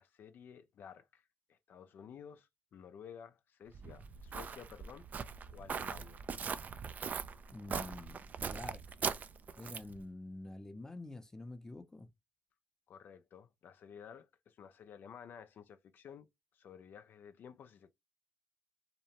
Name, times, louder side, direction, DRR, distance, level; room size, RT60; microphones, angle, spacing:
voice 1, 0.0-5.1 5.5-6.2 12.9-16.3 16.5-17.9, left 7 dB, 60° left, 0.3 m, -53 dB
Walk footsteps, 3.7-10.0, right 6 dB, 45° right, 0.3 m, -41 dB
voice 2, 7.5-8.8 9.6-12.1, left 2 dB, 15° left, 0.6 m, -47 dB
2.8 x 2.1 x 2.8 m
cardioid pair, 75°, 4 cm